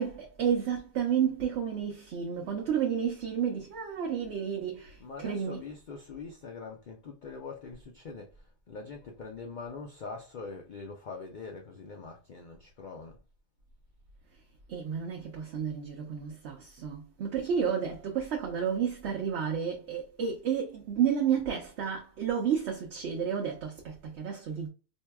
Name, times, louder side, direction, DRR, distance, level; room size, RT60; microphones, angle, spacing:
voice 1, 0.0-5.6 14.7-24.7, right 8 dB, 60° right, 0.9 m, -31 dB
voice 2, 5.0-13.2, left 4 dB, 60° left, 0.5 m, -43 dB
4.4 x 2.7 x 2.2 m
omnidirectional pair, 1.4 m